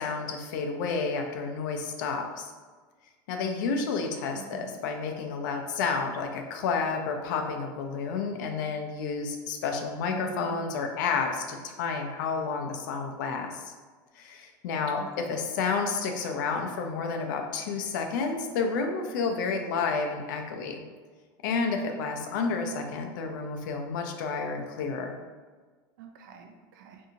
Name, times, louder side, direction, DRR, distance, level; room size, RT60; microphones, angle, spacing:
voice 1, 0.0-2.5 3.3-13.7 14.2-20.8 21.4-25.1, left 5 dB, 75° left, 4 dB, 0.4 m, -30 dB
voice 2, 4.3-4.7 10.1-10.6 15.0-15.1 21.9-22.0 26.0-27.0, right 6 dB, 80° right, 4 dB, 0.4 m, -42 dB
2.6 x 2.5 x 2.7 m, 1.4 s
supercardioid pair, 165°, 11 cm